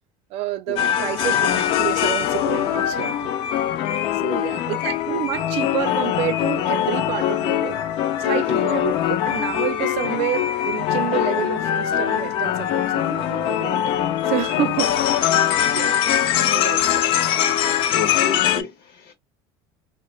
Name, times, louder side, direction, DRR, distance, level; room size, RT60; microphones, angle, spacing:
voice 1, 0.3-3.3 4.2-7.8 8.2-13.8 14.3-16.1 16.5-17.1, right 13 dB, 55° right, 0.5 m, -29 dB
sound 1, 0.8-18.6, left 11 dB, 45° left, 0.4 m, -22 dB
voice 2, 4.1-4.6 8.3-8.6 17.9-19.1, left 5 dB, 70° left, 0.7 m, -30 dB
2.3 x 2.0 x 3.0 m
cardioid pair, 140°, 12 cm